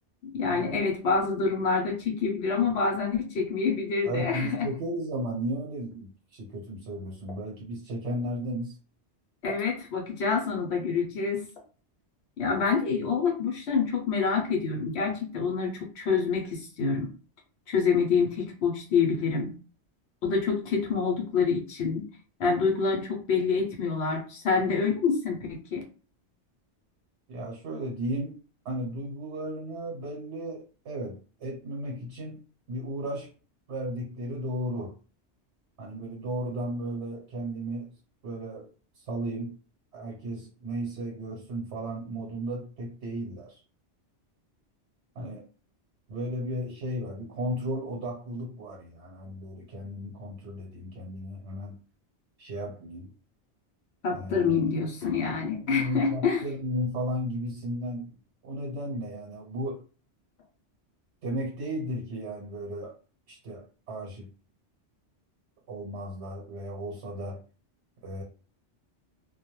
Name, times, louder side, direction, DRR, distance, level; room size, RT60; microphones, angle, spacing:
voice 1, 0.3-4.7 9.4-11.5 12.4-17.1 17.7-19.5 20.2-22.1 22.4-25.8 54.0-56.4, left 5 dB, 70° left, 0 dB, 0.9 m, -27 dB
voice 2, 4.0-8.8 27.3-28.4 28.6-33.3 33.7-35.0 35.8-37.9 38.2-38.7 39.0-39.6 39.9-43.6 45.1-45.4 46.1-51.8 52.4-53.1 54.1-54.6 55.6-58.2 58.4-59.8 61.2-62.9 63.3-64.3 65.7-67.4 68.0-68.2, equal, 75° right, -1 dB, 1.1 m, -34 dB
2.2 x 2.1 x 2.9 m, 0.37 s
omnidirectional pair, 1.2 m